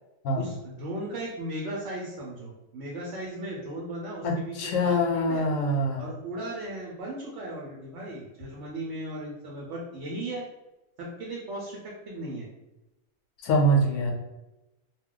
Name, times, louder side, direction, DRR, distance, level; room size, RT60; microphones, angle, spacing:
voice 1, 0.4-4.6 4.8-5.4 6.0-10.4 11.0-12.5, right 1 dB, 65° right, -3 dB, 0.9 m, -36 dB
voice 2, 4.2-6.1 13.4-14.1, equal, 85° left, 1 dB, 1.0 m, -24 dB
2.3 x 2.2 x 3.7 m, 0.99 s
omnidirectional pair, 1.3 m